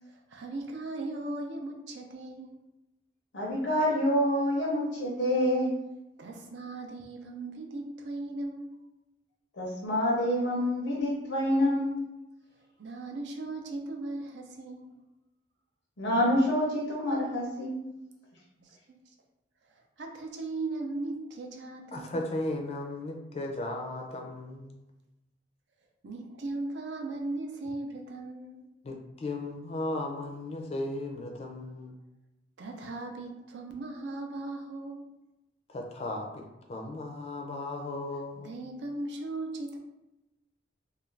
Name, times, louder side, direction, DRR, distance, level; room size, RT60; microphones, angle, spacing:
voice 1, 0.1-2.6 6.2-8.7 12.8-14.9 18.6-18.7 19.7-22.2 26.0-28.7 32.6-35.1 38.4-39.8, right 2 dB, 80° right, 2 dB, 0.5 m, -38 dB
voice 2, 3.3-5.8 9.6-12.1 16.0-17.9, equal, 90° left, -4 dB, 0.6 m, -27 dB
voice 3, 21.9-24.8 28.8-32.0 35.7-38.5, left 2 dB, 35° left, 2 dB, 0.4 m, -36 dB
2.4 x 2.3 x 3.2 m, 0.97 s
head